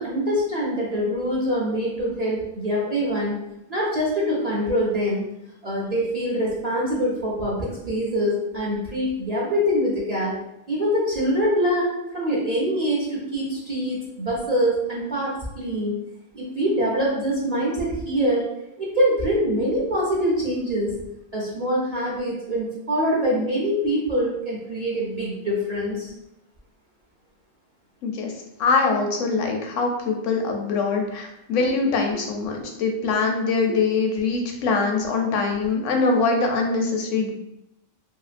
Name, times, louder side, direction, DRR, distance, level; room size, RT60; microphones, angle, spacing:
voice 1, 0.0-3.4 3.7-5.2 5.6-10.3 10.7-16.0 16.3-18.5 18.8-21.0 21.3-26.1, equal, 45° right, -6 dB, 0.5 m, -24 dB
voice 2, 28.0-28.3 28.6-37.3, left 4 dB, 75° left, 2 dB, 0.9 m, -23 dB
2.8 x 2.8 x 2.4 m, 0.86 s
omnidirectional pair, 1.3 m